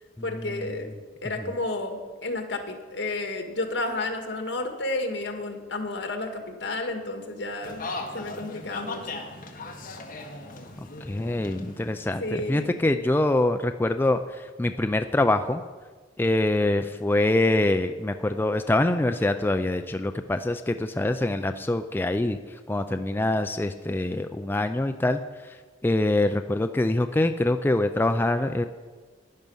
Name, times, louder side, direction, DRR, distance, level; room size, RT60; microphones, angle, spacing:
voice 1, 0.2-0.9 1.2-7.9 8.1-9.2 12.2-12.8, left 2 dB, 75° left, 4 dB, 1.7 m, -31 dB
sound 1, 7.6-12.7, left 2 dB, 50° left, 1.4 m, -38 dB
voice 2, 10.8-14.2 14.6-15.6 16.2-22.4 22.7-25.2 25.8-28.7, left 2 dB, 10° left, 7 dB, 0.3 m, -24 dB
12.0 x 10.0 x 5.4 m, 1.4 s
head